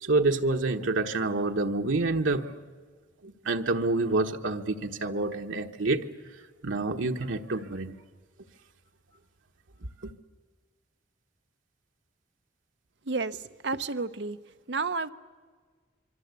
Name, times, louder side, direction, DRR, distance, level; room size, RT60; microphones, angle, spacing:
voice 1, 0.0-2.5 3.2-6.0 6.6-8.0 10.0-10.1, right 2 dB, 90° right, 4 dB, 1.2 m, -27 dB
voice 2, 13.1-13.4 13.6-14.4 14.7-15.1, right 3 dB, 65° right, 10 dB, 0.8 m, -30 dB
25.5 x 24.0 x 8.2 m, 1.5 s
head